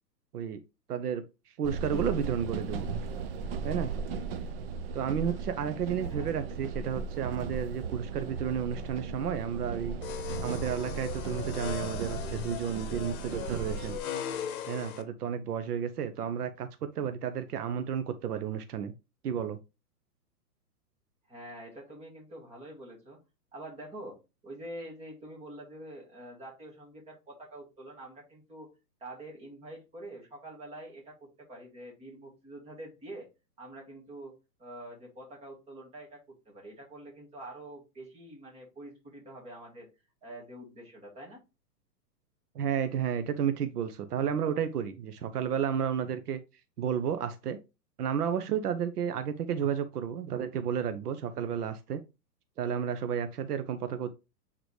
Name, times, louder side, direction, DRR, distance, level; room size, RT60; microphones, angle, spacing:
voice 1, 0.9-2.9 3.6-3.9 4.9-10.0 10.4-14.0 14.7-18.9 19.2-19.6 42.5-46.4 46.8-47.6 48.0-52.0 52.6-54.1, right 8 dB, 70° right, 0.9 m, -32 dB
sound 1, 1.6-14.0, right 5 dB, 35° right, 0.6 m, -36 dB
voice 2, 6.0-6.3 21.3-23.2 23.5-28.7 29.0-33.3 33.6-34.3 34.6-39.9 40.2-41.4, right 1 dB, 10° right, 2.1 m, -46 dB
sound 2, 10.0-15.0, left 9 dB, 60° left, 1.1 m, -38 dB
8.1 x 3.9 x 3.2 m
hypercardioid pair, 155°, 49 cm